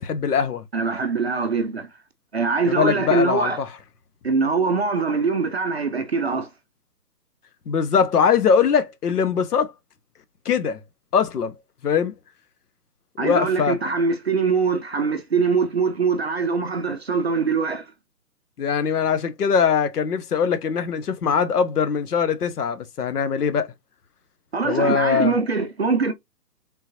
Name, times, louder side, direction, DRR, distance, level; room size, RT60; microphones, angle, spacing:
voice 1, 0.0-0.6 2.7-3.7 7.7-9.7 10.4-10.8 11.1-11.5 11.8-12.2 13.2-13.8 18.6-23.7 24.6-25.3, left 6 dB, 65° left, 0.8 m, -21 dB
voice 2, 0.7-1.9 2.3-3.6 4.2-6.5 13.2-17.9 24.5-26.1, right 4 dB, 40° right, 0.4 m, -23 dB
3.7 x 2.9 x 2.6 m
hypercardioid pair, 150°, 49 cm